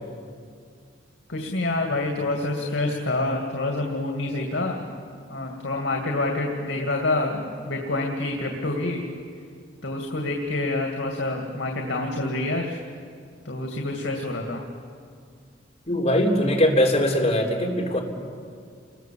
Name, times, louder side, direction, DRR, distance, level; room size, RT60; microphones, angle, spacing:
voice 1, 1.3-4.8 5.3-9.1 9.8-12.8 13.4-14.6, left 2 dB, 85° left, 2 dB, 2.5 m, -27 dB
voice 2, 15.9-18.0, left 1 dB, 35° left, 0 dB, 3.6 m, -21 dB
29.0 x 21.0 x 7.6 m, 2.2 s
head